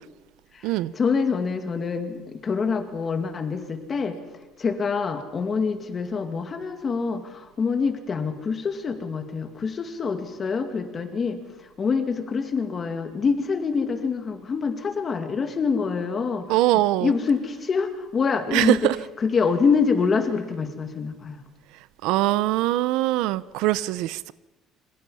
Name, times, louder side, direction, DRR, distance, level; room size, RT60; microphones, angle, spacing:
voice 1, 0.5-4.2 4.6-11.4 11.8-16.5 17.0-18.9 19.2-21.4, left 5 dB, 25° left, 6 dB, 2.3 m, -26 dB
voice 2, 16.5-17.1 18.5-19.0 22.0-24.3, right 16 dB, 80° right, 17 dB, 0.8 m, -22 dB
28.5 x 25.5 x 5.7 m, 1.1 s
cardioid pair, 175°, 0 cm